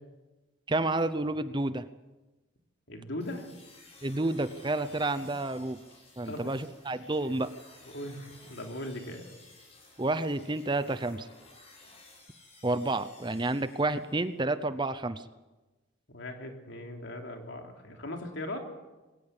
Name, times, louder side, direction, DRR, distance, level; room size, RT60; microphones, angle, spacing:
voice 1, 0.7-1.9 4.0-5.8 6.2-7.5 10.0-11.3 12.6-15.2, right 2 dB, 25° right, 12 dB, 0.7 m, -30 dB
voice 2, 2.9-3.5 6.3-6.5 7.9-9.2 16.1-18.6, left 1 dB, 65° left, 3 dB, 3.3 m, -39 dB
sound 1, 3.2-14.4, left 2 dB, 30° left, 5.9 m, -56 dB
21.5 x 18.0 x 8.2 m, 1.1 s
head